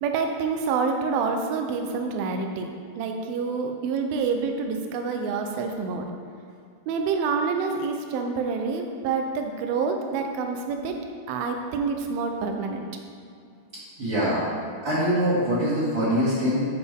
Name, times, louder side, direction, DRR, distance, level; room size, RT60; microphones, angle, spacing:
voice 1, 0.0-2.7 3.0-6.1 6.9-10.9 11.3-12.9, right 5 dB, 75° right, 4 dB, 2.3 m, -27 dB
voice 2, 14.0-14.4 14.8-16.6, equal, 40° right, -11 dB, 2.3 m, -23 dB
13.0 x 5.0 x 3.6 m, 2.3 s
omnidirectional pair, 4.8 m